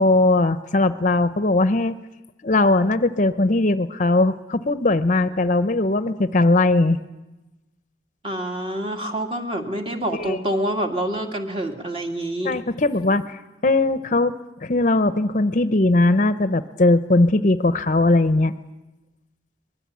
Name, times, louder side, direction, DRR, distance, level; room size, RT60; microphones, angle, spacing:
voice 1, 0.0-1.9 2.4-7.0 10.2-10.4 12.4-14.3 14.6-18.5, left 2 dB, 45° left, 12 dB, 0.7 m, -19 dB
voice 2, 8.2-12.6, right 1 dB, 30° right, 3 dB, 2.3 m, -27 dB
24.0 x 21.0 x 8.5 m, 1.0 s
head